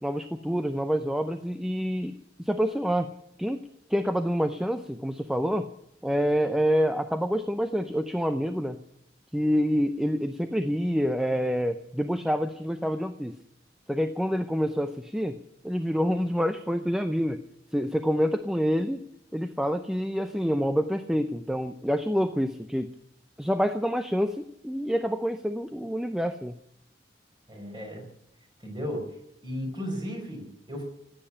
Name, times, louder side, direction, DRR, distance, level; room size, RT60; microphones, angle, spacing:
voice 1, 0.0-2.1 2.4-3.1 3.4-3.6 3.9-5.7 6.0-8.8 9.3-13.3 13.9-15.4 15.6-17.4 17.7-19.0 19.3-22.9 23.4-26.5, equal, 5° right, 8 dB, 0.5 m, -27 dB
voice 2, 27.5-28.0 28.6-29.1 29.4-30.8, equal, 25° right, 2 dB, 4.8 m, -35 dB
15.5 x 8.7 x 10.0 m, 0.80 s
head